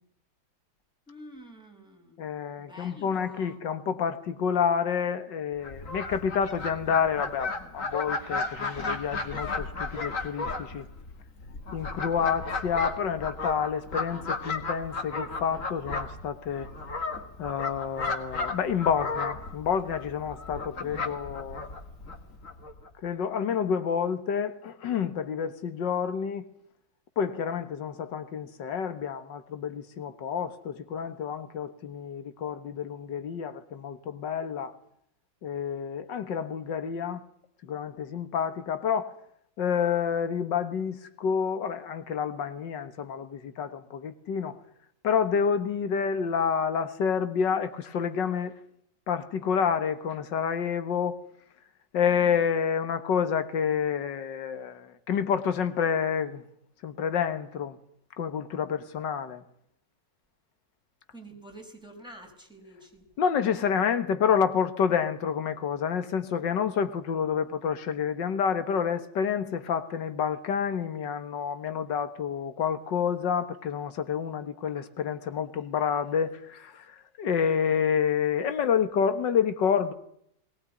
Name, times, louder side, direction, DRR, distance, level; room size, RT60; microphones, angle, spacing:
voice 1, 1.1-2.2 2.6-3.6 20.7-21.1 52.1-52.5 61.1-63.1, right 1 dB, ahead, 5.4 m, -48 dB
voice 2, 2.2-10.9 11.7-16.7 17.4-21.6 23.0-26.4 27.2-34.7 35.4-37.2 37.6-39.1 39.6-44.6 45.0-48.5 49.1-51.2 51.9-56.4 56.8-57.8 58.2-59.4 63.2-79.9, left 7 dB, 90° left, 2.1 m, -28 dB
Fowl, 5.6-22.9, left 3 dB, 45° left, 2.8 m, -35 dB
21.5 x 19.5 x 9.7 m
omnidirectional pair, 1.9 m